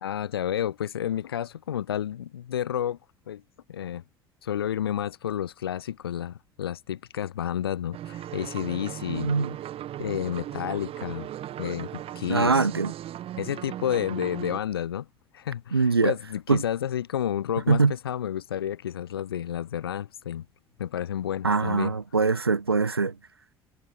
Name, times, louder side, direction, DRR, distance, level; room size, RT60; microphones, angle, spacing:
voice 1, 0.0-3.0 3.3-3.4 3.7-4.0 4.4-9.3 10.0-11.3 11.6-11.9 12.2-12.7 13.4-15.1 15.3-20.5 20.8-21.9, left 10 dB, 80° left, 2.3 m, -30 dB
sound 1, 7.9-14.6, right 12 dB, 50° right, 2.8 m, -37 dB
voice 2, 9.1-9.5 12.3-12.9 15.7-16.1 16.5-16.6 17.7-17.9 21.4-23.1, right 4 dB, 90° right, 0.8 m, -22 dB
figure-of-eight pair, 55°, 12 cm